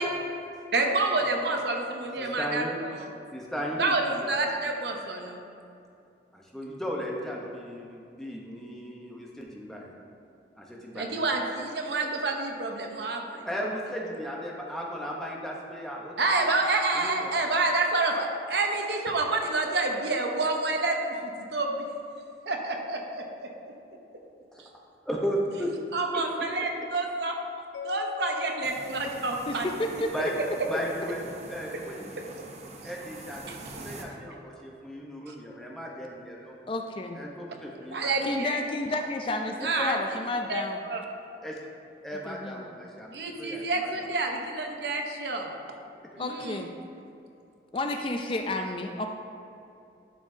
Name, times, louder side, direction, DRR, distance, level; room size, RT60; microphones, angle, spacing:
voice 1, 0.7-2.9 3.8-5.4 10.9-13.5 16.2-21.8 22.5-23.5 25.9-27.4 27.8-29.7 29.9-30.0 33.5-33.6 35.3-35.4 37.9-38.6 39.6-39.9 40.5-40.6 40.9-41.0 43.1-45.5 46.2-46.6, right 3 dB, 70° right, 2 dB, 0.8 m, -28 dB
voice 2, 2.2-2.8 3.3-4.3 6.3-9.9 10.6-11.2 13.4-16.5 16.9-17.3 24.5-24.6 25.1-25.8 26.1-26.2 30.1-30.3 30.7-31.2 31.5-32.1 32.8-36.7 37.1-38.1 41.4-41.6 42.0-43.9, equal, ahead, -3 dB, 0.7 m, -35 dB
Mallet percussion, 27.7-30.7, left 5 dB, 85° left, 0.5 m, -43 dB
sound 1, 28.6-34.0, right 2 dB, 35° right, 0.6 m, -44 dB
voice 3, 29.5-30.1 36.7-37.2 38.2-40.8 42.3-42.7 46.2-46.7 47.7-49.1, left 2 dB, 30° left, 4 dB, 0.3 m, -31 dB
11.0 x 5.4 x 2.7 m, 2.6 s
head